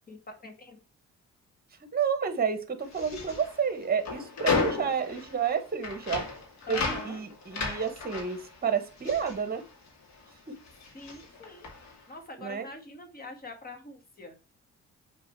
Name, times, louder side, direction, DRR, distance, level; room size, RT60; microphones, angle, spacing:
voice 1, 0.4-0.8 6.7-7.2 10.9-11.7 12.1-14.3, left 2 dB, 30° left, 4 dB, 1.9 m, -44 dB
voice 2, 1.9-6.3 6.7-9.6 12.4-12.7, right 6 dB, 30° right, 9 dB, 1.4 m, -30 dB
sound 1, 2.8-10.3 10.6-12.0, left 4 dB, 65° left, 2.4 m, -34 dB
6.1 x 4.2 x 4.6 m, 0.32 s
cardioid pair, 90°, 30 cm